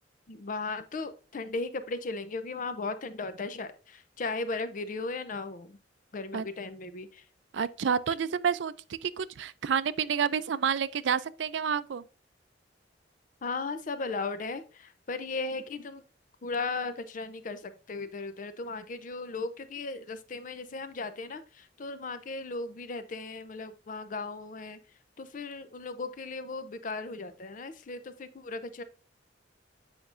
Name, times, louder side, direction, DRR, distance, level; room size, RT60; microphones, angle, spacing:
voice 1, 0.3-5.8 6.1-7.2 13.4-16.0 16.4-24.8 25.2-28.8, left 3 dB, 45° left, 0.5 m, -36 dB
voice 2, 7.5-12.0, right 7 dB, 85° right, 0.4 m, -29 dB
8.1 x 5.2 x 2.5 m
head